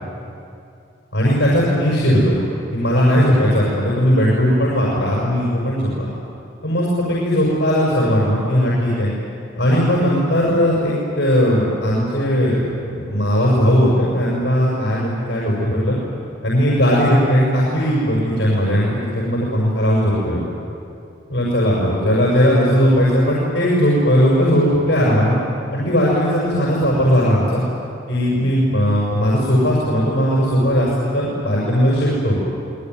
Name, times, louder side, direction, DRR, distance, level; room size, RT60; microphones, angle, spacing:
voice 1, 1.1-2.4 2.7-6.1 6.6-9.1 9.6-16.0 16.4-20.4 21.3-25.3 25.7-27.6 28.1-32.4, equal, 70° left, -5 dB, 6.4 m, -17 dB
27.0 x 20.0 x 9.5 m, 2.6 s
head